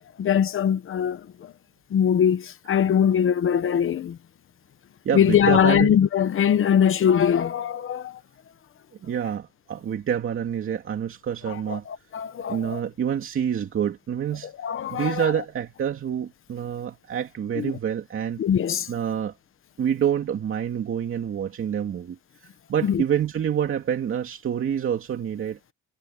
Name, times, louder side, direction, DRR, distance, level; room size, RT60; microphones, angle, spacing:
voice 1, 0.2-1.2 1.9-4.2 5.1-8.1 11.7-12.8 14.6-15.3 17.6-17.7 18.4-18.9 22.8-23.0, left 8 dB, 40° left, 1.0 m, -21 dB
voice 2, 5.0-6.0 9.0-11.8 12.5-14.5 14.9-18.4 18.9-19.3 19.8-22.2 22.7-25.6, right 9 dB, 40° right, 2.6 m, -27 dB
cardioid pair, 165°, 31 cm